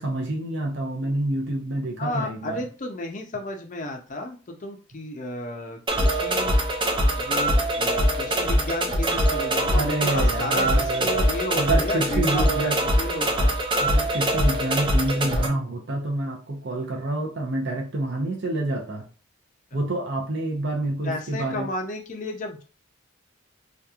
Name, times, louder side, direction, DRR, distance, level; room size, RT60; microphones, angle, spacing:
voice 1, 0.0-2.6 9.7-11.2 11.5-12.8 13.8-19.1 19.7-21.7, right 2 dB, 55° right, 0 dB, 0.6 m, -27 dB
voice 2, 2.0-6.6 7.2-13.6 15.1-15.5 21.0-22.6, left 1 dB, 40° left, 3 dB, 0.5 m, -33 dB
sound 1, 5.9-15.5, equal, 25° right, 0.4 m, -23 dB
2.9 x 2.4 x 2.4 m, 0.35 s
head